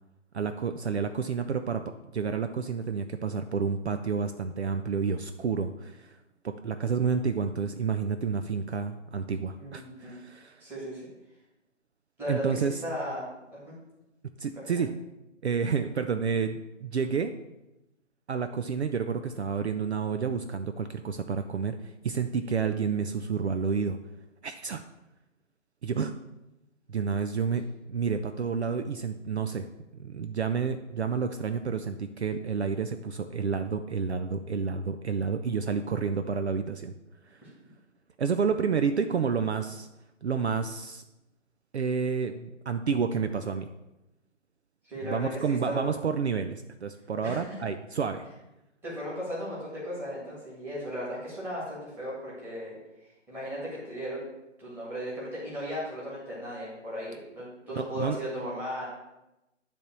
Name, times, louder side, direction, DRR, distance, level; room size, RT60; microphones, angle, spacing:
voice 1, 0.3-6.2 6.4-10.6 12.3-12.8 14.2-15.0 15.4-17.4 18.3-24.0 24.4-24.8 25.8-26.2 26.9-27.6 27.9-29.7 29.9-36.9 37.2-37.5 38.2-39.9 40.2-41.0 41.7-43.7 45.0-48.3 57.8-58.2, right 6 dB, 60° right, 8 dB, 0.6 m, -30 dB
voice 2, 9.6-10.1 10.6-11.0 12.2-13.7 14.6-14.7 37.4-37.5 44.8-45.9 47.2-47.6 48.8-52.8 53.0-54.2 54.6-58.8, equal, 5° right, -8 dB, 1.8 m, -36 dB
10.0 x 3.5 x 6.1 m, 0.95 s
figure-of-eight pair, 150°, 37 cm